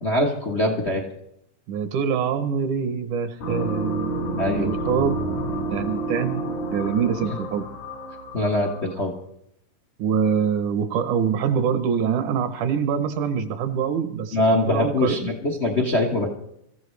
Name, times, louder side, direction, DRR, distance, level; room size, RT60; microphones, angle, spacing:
voice 1, 0.0-1.0 4.4-4.7 8.3-9.1 14.3-16.3, left 1 dB, 70° left, 1 dB, 0.6 m, -23 dB
voice 2, 1.7-4.1 4.5-5.2 5.7-6.4 6.7-7.7 10.0-15.3, right 7 dB, 75° right, 8 dB, 2.3 m, -24 dB
sound 1, 3.4-9.0, right 2 dB, 85° left, 7.1 m, -29 dB
25.0 x 14.5 x 3.3 m, 0.77 s
omnidirectional pair, 3.7 m